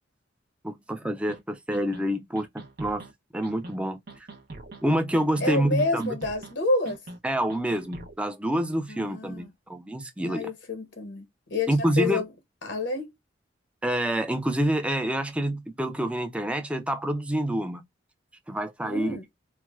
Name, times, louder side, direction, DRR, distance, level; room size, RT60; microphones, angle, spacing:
voice 1, 0.6-3.0 3.3-4.0 4.8-6.2 7.2-10.5 11.7-12.2 13.8-17.8 18.5-19.2, right 1 dB, 5° right, 0.5 m, -27 dB
sound 1, 1.3-1.4 1.7-2.0 2.4-3.1 3.4-3.8 4.1-4.8 5.1-5.5 5.8-6.5 6.9-7.2 7.5-8.1, right 2 dB, 55° right, 0.7 m, -42 dB
voice 2, 5.4-7.0 8.9-9.5 10.2-11.2 11.5-12.3 12.6-13.1 18.8-19.2, left 3 dB, 70° left, 0.9 m, -28 dB
4.5 x 2.1 x 2.3 m
head